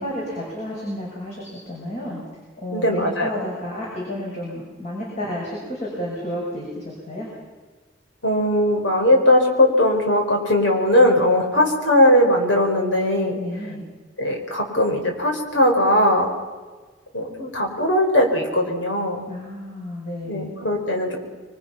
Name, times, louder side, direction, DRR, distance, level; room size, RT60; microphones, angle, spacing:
voice 1, 0.0-2.2 2.6-7.3 13.3-13.8 19.3-20.5, equal, 40° left, -4 dB, 6.6 m, -31 dB
voice 2, 2.7-3.4 8.2-13.4 14.2-16.3 17.1-19.3 20.2-21.2, left 1 dB, 85° left, 2 dB, 5.2 m, -19 dB
26.5 x 23.5 x 5.8 m, 1.4 s
head